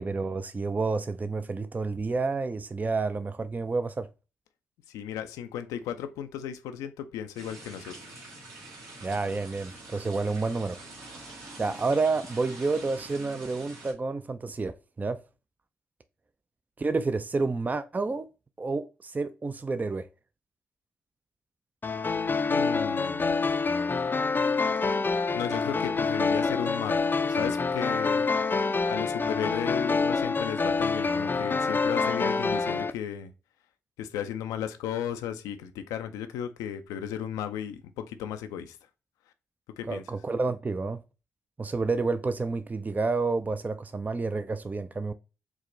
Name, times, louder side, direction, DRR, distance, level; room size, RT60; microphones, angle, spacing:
voice 1, 0.0-4.1 9.0-10.8 11.6-15.2 16.8-18.3 18.6-20.1 39.9-41.0 41.6-45.1, right 3 dB, 30° right, 0.4 m, -29 dB
voice 2, 4.9-8.3 22.5-23.4 25.3-28.3 28.9-33.3 34.0-38.8 39.8-40.0, left 9 dB, 90° left, 0.5 m, -35 dB
sound 1, 7.3-13.9, right 2 dB, 75° right, 1.5 m, -45 dB
sound 2, 21.8-32.9, left 4 dB, 35° left, 0.4 m, -26 dB
4.6 x 2.1 x 3.7 m
supercardioid pair, 45°, 6 cm